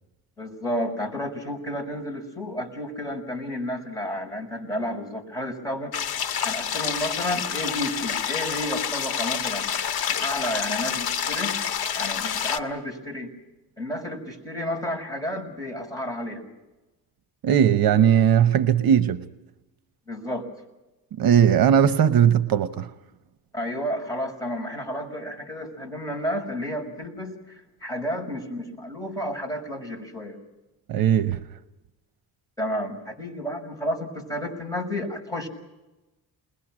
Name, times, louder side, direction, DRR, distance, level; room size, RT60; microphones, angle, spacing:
voice 1, 0.4-6.2 6.4-9.7 10.1-11.6 11.9-13.3 13.8-16.4 20.1-20.5 23.5-30.4 32.6-35.5, equal, 10° left, 5.9 m, -31 dB
sound 1, 5.9-12.6, left 8 dB, 70° left, 1.5 m, -28 dB
voice 2, 17.4-19.3 21.2-22.9 30.9-31.4, right 9 dB, 65° right, 1.0 m, -19 dB
29.0 x 21.5 x 6.2 m
cardioid pair, 140°, 38 cm